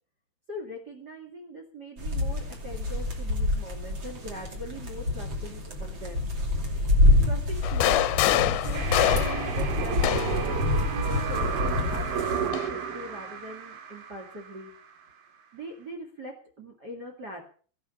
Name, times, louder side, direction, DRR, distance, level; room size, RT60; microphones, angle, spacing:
voice 1, 0.5-6.3 7.2-14.7 15.5-17.4, equal, 55° right, 0 dB, 1.1 m, -41 dB
sound 1, 2.0-12.5, left 2 dB, 35° right, 2.3 m, -27 dB
sound 2, 7.6-10.5 11.6-12.7, left 14 dB, 80° left, 2.8 m, -26 dB
sound 3, 8.7-14.7, right 7 dB, 75° right, 4.2 m, -32 dB
15.0 x 10.5 x 5.6 m, 0.42 s
omnidirectional pair, 5.6 m